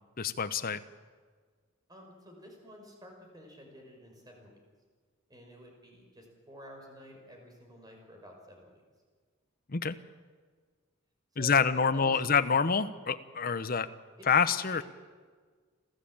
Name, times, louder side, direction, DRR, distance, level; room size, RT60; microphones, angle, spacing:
voice 1, 0.2-0.8 9.7-10.0 11.4-13.9 14.3-14.8, left 6 dB, 45° left, 11 dB, 0.9 m, -27 dB
voice 2, 1.9-4.5 5.3-8.8 11.3-12.4 14.2-14.3 14.7-14.8, equal, 20° right, 1 dB, 5.5 m, -51 dB
29.5 x 13.0 x 8.7 m, 1.5 s
head